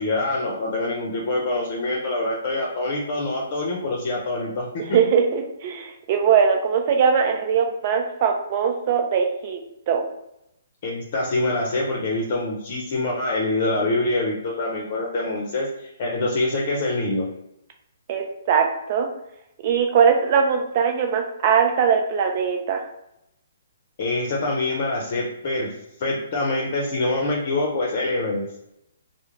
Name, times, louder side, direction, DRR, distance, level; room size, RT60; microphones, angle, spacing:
voice 1, 0.0-5.0 10.8-17.2 24.0-25.7 26.0-28.5, left 2 dB, 50° left, -3 dB, 0.6 m, -25 dB
voice 2, 4.9-9.6 9.9-10.0 18.1-19.1 19.6-22.8, right 7 dB, 40° right, 3 dB, 0.6 m, -21 dB
2.3 x 2.1 x 3.1 m, 0.81 s
hypercardioid pair, 145°, 0 cm